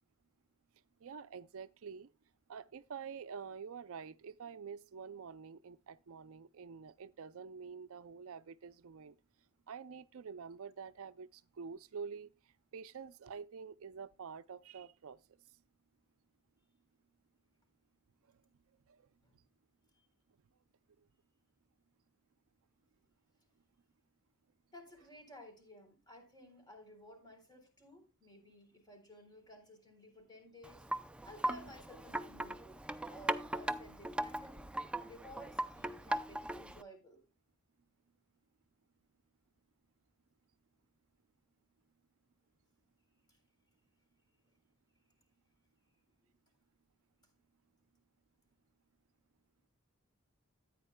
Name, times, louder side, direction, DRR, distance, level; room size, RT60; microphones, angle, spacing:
voice 1, 1.0-2.1 2.5-9.1 9.7-12.3 12.7-15.2 18.9-19.0, right 6 dB, 65° right, 0.5 m, -47 dB
voice 2, 24.7-32.8 33.1-34.7 35.0-37.2 43.3-43.4, left 1 dB, 20° left, 3.8 m, -55 dB
Wind chime, 30.6-36.8, right 1 dB, 5° right, 0.4 m, -39 dB
14.5 x 9.3 x 2.2 m
head